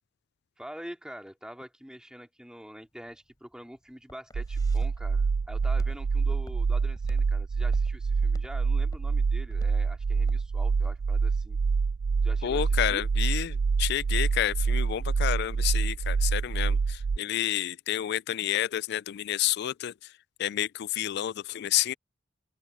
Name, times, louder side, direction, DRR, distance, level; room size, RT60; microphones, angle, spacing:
voice 1, 0.6-11.6 12.2-13.1, equal, 5° right, 2.5 m, -45 dB
Walk footsteps, 2.9-11.0, equal, 20° left, 5.6 m, -50 dB
sound 1, 4.3-17.2, right 5 dB, 60° right, 0.4 m, -26 dB
voice 2, 12.4-19.9 20.4-21.9, left 12 dB, 60° left, 0.3 m, -29 dB
open air
head